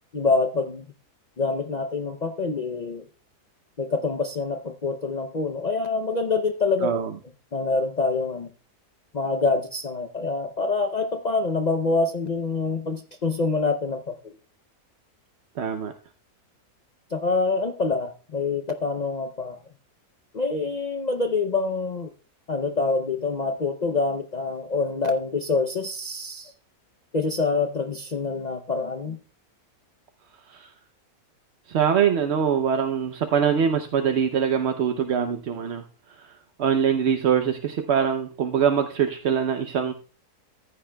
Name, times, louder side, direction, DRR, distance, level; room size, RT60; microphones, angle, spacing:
voice 1, 0.1-0.9 1.4-3.0 3.8-6.9 7.5-8.5 9.1-14.2 17.1-19.6 20.3-22.1 22.5-26.5 27.1-29.2, left 3 dB, 60° left, 5 dB, 0.4 m, -26 dB
voice 2, 15.6-15.9 30.5-30.7 31.7-35.8 36.2-39.9, right 7 dB, 55° right, 6 dB, 0.8 m, -23 dB
14.5 x 9.9 x 2.2 m, 0.37 s
omnidirectional pair, 1.6 m